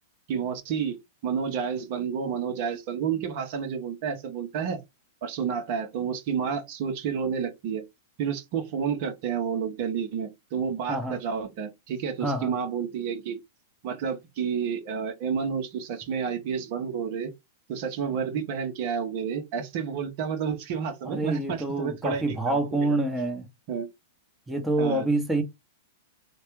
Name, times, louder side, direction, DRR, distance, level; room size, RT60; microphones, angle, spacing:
voice 1, 0.3-4.8 5.2-7.8 8.2-13.4 13.8-17.3 17.7-23.0 23.7-23.9 24.8-25.1, right 7 dB, 50° right, 0.8 m, -30 dB
voice 2, 10.9-11.2 12.2-12.5 21.0-23.5 24.5-25.4, right 2 dB, 5° right, 0.8 m, -27 dB
3.2 x 2.2 x 3.0 m
hypercardioid pair, 105°, 0 cm